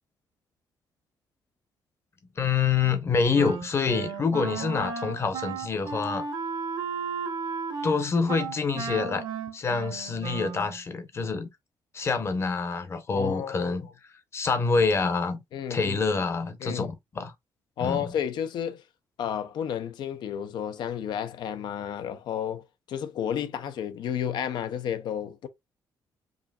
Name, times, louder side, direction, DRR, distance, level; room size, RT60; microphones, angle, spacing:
voice 1, 2.4-6.2 7.8-9.2 9.5-11.5 11.9-13.9 14.3-15.4 15.7-17.3 17.8-18.1, left 5 dB, 35° left, 0.8 m, -26 dB
Wind instrument woodwind instrument, 3.3-10.8, right 5 dB, 75° right, 1.4 m, -34 dB
voice 2, 4.5-4.9 13.1-13.8 15.5-16.0 16.6-16.9 17.8-18.8 19.2-25.5, left 9 dB, 70° left, 0.6 m, -32 dB
4.9 x 2.7 x 2.3 m
cardioid pair, 120°, 8 cm